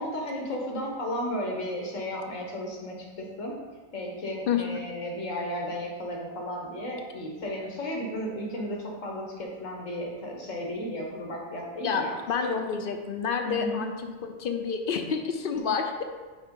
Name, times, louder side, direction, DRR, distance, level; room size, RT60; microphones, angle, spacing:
voice 1, 0.0-3.5 3.9-12.2 13.5-13.8 15.6-15.7, equal, 70° left, 0 dB, 1.6 m, -34 dB
voice 2, 11.8-16.0, left 6 dB, 55° left, 5 dB, 0.7 m, -29 dB
9.1 x 3.4 x 3.7 m, 1.3 s
omnidirectional pair, 1.4 m